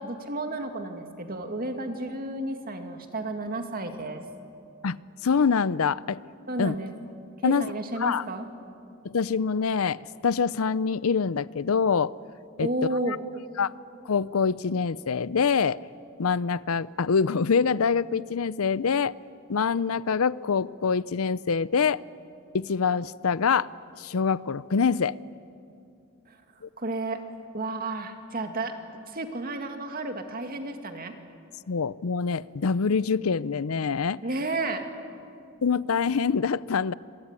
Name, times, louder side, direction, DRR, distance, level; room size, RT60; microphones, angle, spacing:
voice 1, 0.0-4.2 6.5-6.9 7.4-8.5 12.6-13.2 26.3-26.4 26.8-27.2 27.5-28.7 29.1-31.1 34.2-34.8, right 2 dB, 45° right, 5 dB, 2.3 m, -32 dB
voice 2, 5.2-6.2 6.6-6.8 7.4-7.7 8.0-8.2 9.0-12.1 12.6-12.7 13.1-13.2 13.6-13.7 14.0-15.8 16.2-19.1 19.5-22.0 22.5-23.7 24.0-25.1 31.7-34.2 35.6-36.9, left 5 dB, 85° left, 19 dB, 0.6 m, -25 dB
26.5 x 22.5 x 9.7 m, 2.5 s
head